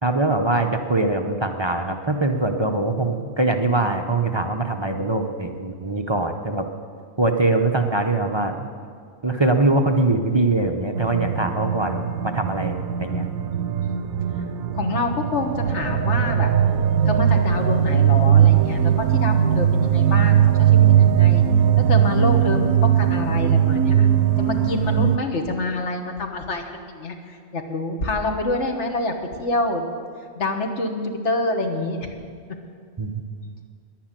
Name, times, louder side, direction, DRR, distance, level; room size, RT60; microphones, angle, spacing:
voice 1, 0.0-6.7 7.2-8.7 9.2-13.3 33.0-33.2, right 2 dB, 30° right, 4 dB, 0.5 m, -22 dB
sound 1, 11.0-25.2, right 9 dB, 85° right, 1.2 m, -19 dB
voice 2, 14.7-16.5 17.0-21.4 21.8-24.1 24.4-29.9 30.3-32.1, left 2 dB, 55° left, 4 dB, 1.6 m, -26 dB
11.0 x 10.5 x 9.0 m, 2.2 s
omnidirectional pair, 1.4 m